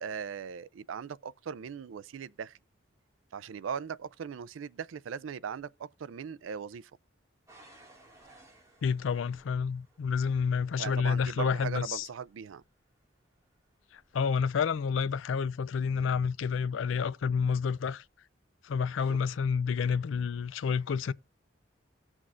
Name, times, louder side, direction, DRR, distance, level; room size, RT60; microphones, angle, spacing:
voice 1, 0.0-2.6 3.3-6.9 10.8-12.6 19.0-19.2, right 7 dB, 85° right, 0.4 m, -39 dB
sound 1, 7.5-16.3 17.0-17.4 18.0-18.1, right 2 dB, 15° right, 2.0 m, -62 dB
voice 2, 8.8-12.1 13.9-18.0 18.6-21.1, left 6 dB, 80° left, 0.4 m, -29 dB
17.5 x 6.2 x 2.5 m
head